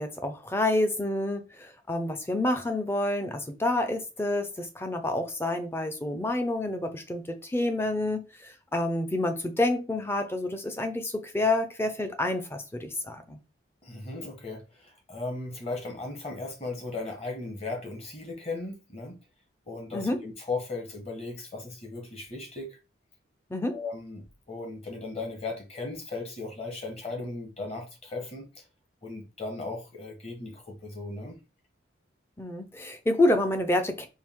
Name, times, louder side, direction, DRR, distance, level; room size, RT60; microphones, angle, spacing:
voice 1, 0.0-13.4 19.9-20.2 23.5-23.8 32.4-34.1, left 1 dB, 10° left, 0.5 m, -28 dB
voice 2, 13.8-19.2 19.7-22.8 23.7-28.6 29.0-31.4, left 3 dB, 30° left, 1.2 m, -37 dB
4.5 x 2.4 x 3.6 m
head